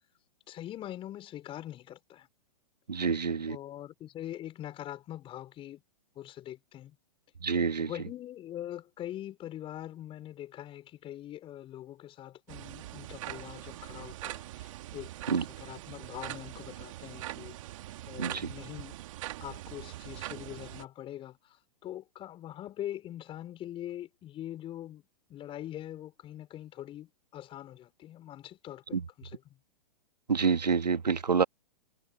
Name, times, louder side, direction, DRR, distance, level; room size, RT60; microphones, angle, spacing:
voice 1, 0.5-2.3 3.5-5.8 6.1-7.0 7.8-17.6 18.0-19.0 19.4-25.0 25.3-29.4, left 12 dB, 25° left, 4.8 m, -43 dB
voice 2, 2.9-3.6 7.4-7.9 15.3-15.4 18.2-18.5 28.9-29.0 30.3-31.4, right 5 dB, 85° right, 1.4 m, -27 dB
sound 1, 12.5-20.8, right 15 dB, 50° right, 2.4 m, -42 dB
figure-of-eight pair, 115°, 21 cm